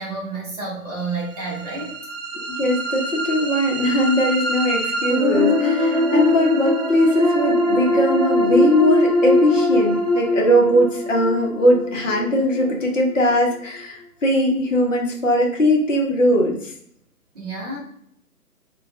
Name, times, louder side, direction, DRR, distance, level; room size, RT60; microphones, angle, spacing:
voice 1, 0.0-1.9 17.3-17.8, right 3 dB, 25° right, -7 dB, 0.8 m, -30 dB
sound 1, 1.2-13.3, left 1 dB, 20° left, 1.0 m, -22 dB
voice 2, 2.6-16.7, equal, 55° left, 0 dB, 0.7 m, -20 dB
2.2 x 2.1 x 2.6 m, 0.68 s
figure-of-eight pair, 140°, 45 cm